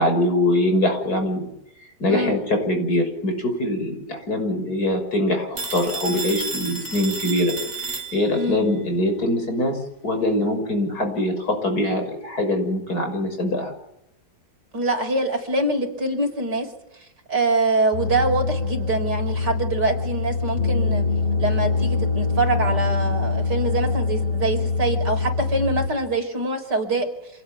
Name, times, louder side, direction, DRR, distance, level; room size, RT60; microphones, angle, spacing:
voice 1, 0.0-1.5 2.0-9.8 10.0-13.7, left 1 dB, 55° left, 5 dB, 6.8 m, -23 dB
Telephone, 5.6-8.6, right 3 dB, 30° right, 4.5 m, -31 dB
voice 2, 14.7-16.7 17.3-21.0 21.4-27.1, right 2 dB, 65° right, 3 dB, 5.9 m, -24 dB
sound 1, 17.9-25.9, left 4 dB, 30° left, 7.5 m, -24 dB
27.0 x 17.5 x 9.5 m, 0.82 s
omnidirectional pair, 1.9 m